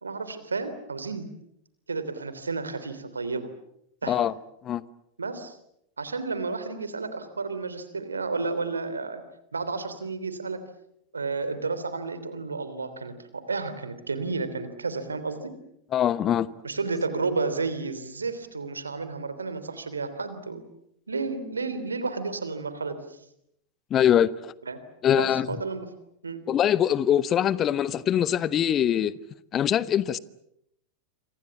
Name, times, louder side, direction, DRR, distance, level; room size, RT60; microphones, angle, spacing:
voice 1, 0.0-1.3 1.9-3.5 4.0-4.3 5.2-5.5 6.0-9.2 9.5-10.6 11.1-15.5 16.6-20.6 21.1-23.2 24.6-24.8 25.1-25.9 26.2-26.4, right 4 dB, 75° right, 3.3 m, -32 dB
voice 2, 15.9-16.5 23.9-24.5 25.0-25.5 26.5-29.1 29.5-30.2, left 10 dB, 30° left, 1.0 m, -23 dB
28.5 x 25.5 x 7.2 m
figure-of-eight pair, 90°, 0 cm